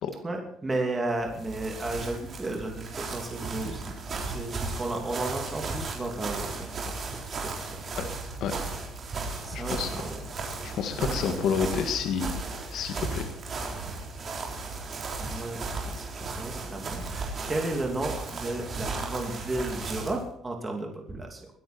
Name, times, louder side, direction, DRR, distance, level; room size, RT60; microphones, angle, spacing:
voice 1, 0.2-3.9 4.3-6.9 7.2-7.7 9.4-10.1 10.9-11.3 15.2-21.5, right 2 dB, 20° right, 2 dB, 2.9 m, -33 dB
sound 1, 1.1-20.2, right 3 dB, 40° right, 4.0 m, -35 dB
voice 2, 9.5-9.9 10.6-12.4 12.7-13.2, left 6 dB, 65° left, 6 dB, 1.8 m, -29 dB
22.5 x 10.5 x 4.5 m, 0.70 s
cardioid pair, 125°, 0 cm